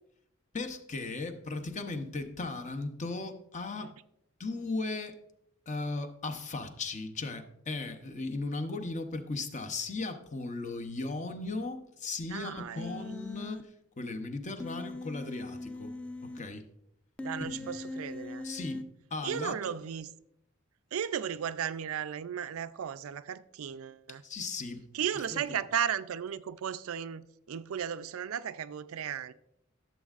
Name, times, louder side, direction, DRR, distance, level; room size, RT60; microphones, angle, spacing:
voice 1, 0.5-3.9 4.4-5.2 5.7-13.7 14.0-15.9 16.2-16.7 17.4-17.7 18.4-19.7 24.2-24.8 25.3-25.6, left 3 dB, 35° left, 0.7 m, -37 dB
voice 2, 12.3-13.1 17.2-18.5 19.2-20.1 20.9-24.2 24.9-29.3, right 8 dB, 90° right, 0.4 m, -35 dB
Human voice, 12.8-13.6 14.6-16.4 17.2-18.8, left 2 dB, 5° left, 0.4 m, -40 dB
12.5 x 7.2 x 2.4 m
head